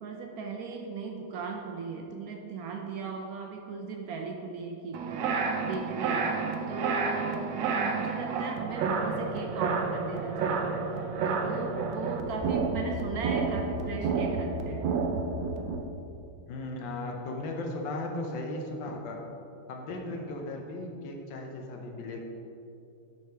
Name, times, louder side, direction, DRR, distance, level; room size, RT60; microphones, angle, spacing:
voice 1, 0.0-10.7 11.3-14.9, right 4 dB, 70° right, 2 dB, 0.9 m, -37 dB
sound 1, 4.9-15.8, right 4 dB, 85° right, 1.3 m, -30 dB
voice 2, 16.5-19.2 19.7-22.2, left 2 dB, 90° left, 2 dB, 1.6 m, -36 dB
5.8 x 5.7 x 4.5 m, 2.7 s
omnidirectional pair, 2.0 m